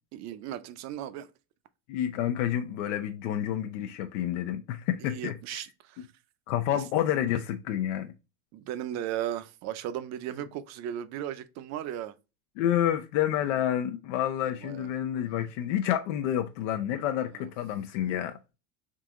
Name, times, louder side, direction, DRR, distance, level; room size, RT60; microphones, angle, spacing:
voice 1, 0.1-1.3 5.0-6.1 6.7-6.8 8.5-12.1 14.6-14.9, right 11 dB, 50° right, 0.6 m, -36 dB
voice 2, 1.9-5.6 6.5-8.1 12.6-18.4, left 11 dB, 90° left, 0.6 m, -29 dB
3.8 x 2.9 x 3.5 m
cardioid pair, 140°, 36 cm